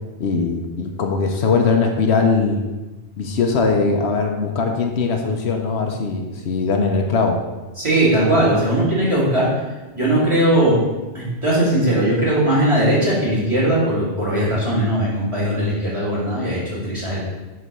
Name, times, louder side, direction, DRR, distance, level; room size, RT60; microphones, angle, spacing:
voice 1, 0.2-2.6 3.2-7.4, left 4 dB, 75° left, 3 dB, 1.0 m, -20 dB
voice 2, 7.8-9.6 9.9-10.8 11.1-17.2, right 1 dB, 25° right, -7 dB, 2.6 m, -19 dB
7.8 x 3.3 x 5.3 m, 1.2 s
omnidirectional pair, 1.1 m